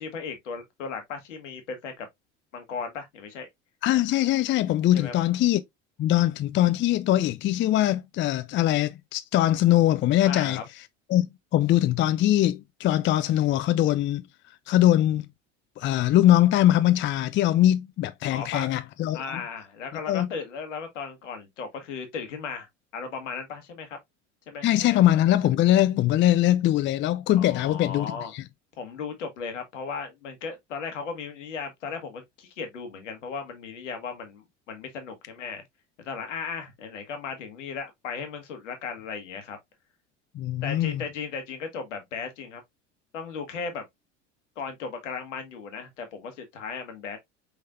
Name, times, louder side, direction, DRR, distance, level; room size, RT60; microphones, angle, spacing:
voice 1, 0.0-2.1 2.5-3.5 4.9-5.1 10.2-10.6 18.3-18.7 19.1-22.7 22.9-24.0 24.5-25.0 27.3-28.3 28.8-35.6 36.0-39.6 40.6-42.6 43.1-43.8 44.5-47.2, left 5 dB, 80° left, 1.6 m, -36 dB
voice 2, 3.8-5.6 6.0-10.6 11.1-11.3 11.5-14.2 14.7-15.3 15.8-19.4 20.1-20.3 24.6-28.4 40.3-41.0, left 13 dB, 35° left, 0.5 m, -22 dB
5.3 x 3.9 x 2.5 m
hypercardioid pair, 75°, 36 cm